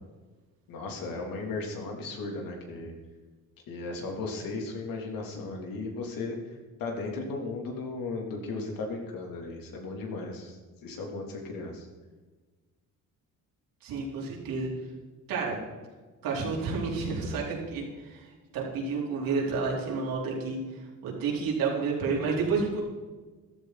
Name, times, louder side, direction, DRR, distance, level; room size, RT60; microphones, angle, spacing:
voice 1, 0.7-2.9 3.7-6.4 6.8-11.9, left 3 dB, 80° left, 1 dB, 3.2 m, -36 dB
voice 2, 13.8-14.7 15.3-15.6 16.2-20.6 21.0-22.8, right 4 dB, 85° right, -3 dB, 4.6 m, -30 dB
14.5 x 13.0 x 4.1 m, 1.3 s
cardioid pair, 140°, 34 cm